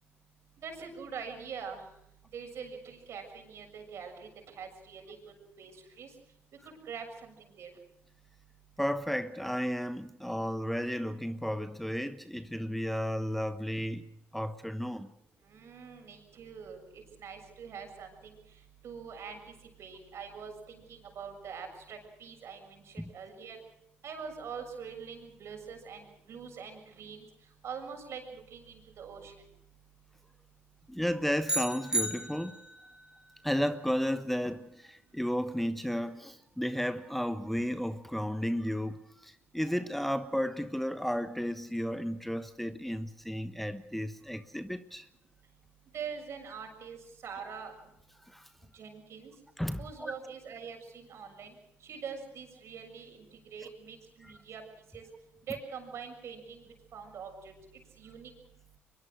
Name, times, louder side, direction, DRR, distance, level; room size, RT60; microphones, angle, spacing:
voice 1, 0.6-1.8 2.3-5.2 5.6-6.1 6.6-7.7 15.4-19.5 19.8-23.6 24.0-27.2 27.6-29.3 45.9-47.0 47.2-47.8 48.7-49.3 49.8-51.5 51.8-54.6 54.9-55.0 55.5-56.6 56.9-57.5 58.0-58.3, right 6 dB, 65° right, 6.9 m, -44 dB
voice 2, 8.8-14.1 14.3-15.1 23.0-23.1 30.9-32.5 33.4-45.1 48.3-48.5 49.6-50.1 54.2-54.3, equal, 5° left, 1.1 m, -33 dB
sound 1, 31.5-32.9, right 2 dB, 15° right, 2.1 m, -33 dB
23.5 x 22.5 x 6.5 m
supercardioid pair, 70°, 5 cm